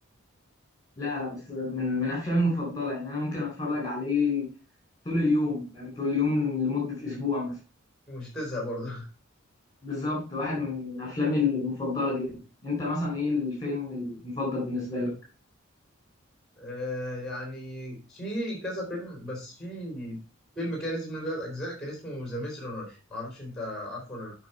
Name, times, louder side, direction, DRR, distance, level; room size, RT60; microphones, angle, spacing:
voice 1, 1.0-4.5 5.0-7.5 9.8-12.3 12.6-15.1, left 3 dB, 20° left, -2 dB, 4.1 m, -28 dB
voice 2, 8.1-9.1 16.6-20.2 20.6-24.3, equal, ahead, -1 dB, 4.0 m, -35 dB
9.0 x 5.5 x 4.4 m, 0.32 s
head